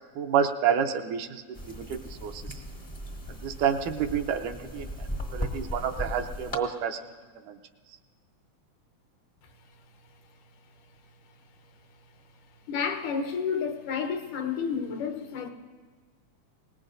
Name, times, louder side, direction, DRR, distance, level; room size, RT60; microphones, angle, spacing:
voice 1, 0.2-2.6 3.3-5.1 5.3-7.1 7.5-7.6, right 8 dB, 85° right, 2.2 m, -29 dB
sound 1, 1.5-6.6, left 1 dB, 45° left, 0.4 m, -37 dB
voice 2, 12.7-15.5, left 6 dB, 90° left, 2.6 m, -30 dB
23.0 x 19.5 x 2.6 m
omnidirectional pair, 3.5 m